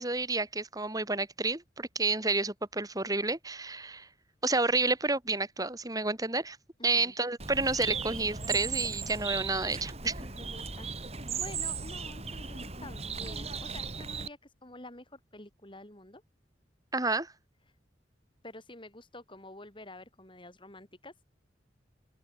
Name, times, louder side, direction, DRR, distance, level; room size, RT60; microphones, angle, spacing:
voice 1, 0.0-4.1 4.4-6.6 6.8-10.2 16.9-17.3, right 3 dB, 20° right, 3.6 m, -30 dB
voice 2, 6.8-7.1 10.2-16.2 17.7-17.8 18.4-21.1, left 2 dB, 25° left, 7.6 m, -49 dB
Bird, 7.4-14.3, right 5 dB, 35° right, 6.0 m, -37 dB
open air
head